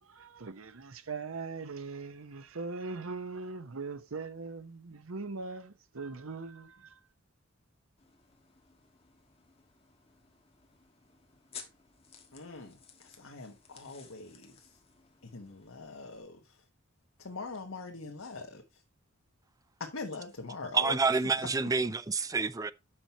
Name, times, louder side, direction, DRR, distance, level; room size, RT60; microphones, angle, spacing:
voice 1, 0.0-7.0, right 4 dB, 80° right, 0.9 m, -41 dB
sound 1, 8.0-16.2, left 6 dB, 30° left, 1.5 m, -55 dB
voice 2, 12.3-14.7 15.3-16.6 17.2-18.6 19.8-21.0 21.3-21.5, left 3 dB, 80° left, 1.3 m, -42 dB
voice 3, 20.7-22.7, right 4 dB, 15° right, 0.4 m, -28 dB
7.7 x 5.9 x 4.3 m
head